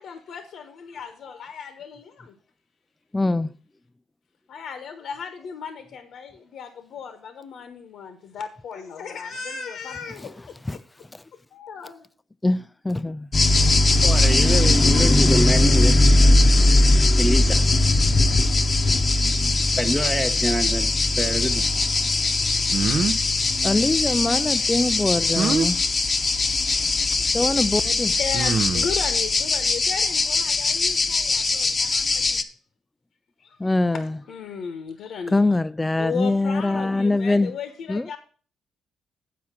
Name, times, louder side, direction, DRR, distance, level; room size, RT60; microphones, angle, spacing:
voice 1, 0.0-2.3 4.5-10.5 11.5-12.1 27.8-27.9 28.2-32.5 33.4-33.7 34.3-35.6 36.0-38.2, left 6 dB, 70° left, 1.1 m, -36 dB
voice 2, 3.1-3.5 10.7-10.8 12.4-13.3 23.5-25.8 26.6-26.7 27.3-28.2 33.6-34.2 35.3-37.5 37.9-38.1, left 2 dB, 15° left, 0.4 m, -23 dB
sound 1, 13.3-32.4, left 2 dB, 35° left, 0.9 m, -20 dB
voice 3, 14.0-16.1 17.2-17.6 19.8-21.6, right 1 dB, 10° right, 0.8 m, -26 dB
sound 2, 22.7-23.2 25.4-25.7 27.1-27.2 28.3-29.0, right 5 dB, 50° right, 0.7 m, -24 dB
8.6 x 4.8 x 7.3 m
cardioid pair, 90°, 0 cm